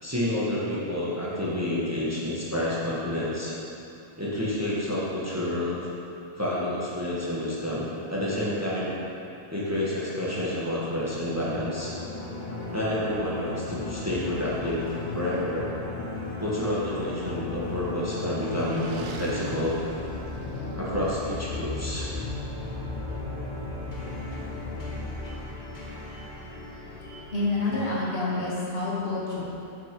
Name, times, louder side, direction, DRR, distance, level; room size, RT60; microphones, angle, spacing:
voice 1, 0.0-3.5 4.2-5.8 6.4-8.9 9.5-11.9 12.7-15.7 16.4-19.8 20.7-22.1, left 1 dB, 15° right, -7 dB, 1.2 m, -29 dB
sound 1, 11.1-27.5, left 2 dB, 45° left, 1.2 m, -35 dB
sound 2, 17.3-21.1, right 5 dB, 70° right, 0.8 m, -42 dB
voice 2, 27.3-29.4, left 2 dB, 60° left, -7 dB, 1.7 m, -28 dB
6.3 x 5.9 x 5.2 m, 2.8 s
omnidirectional pair, 1.1 m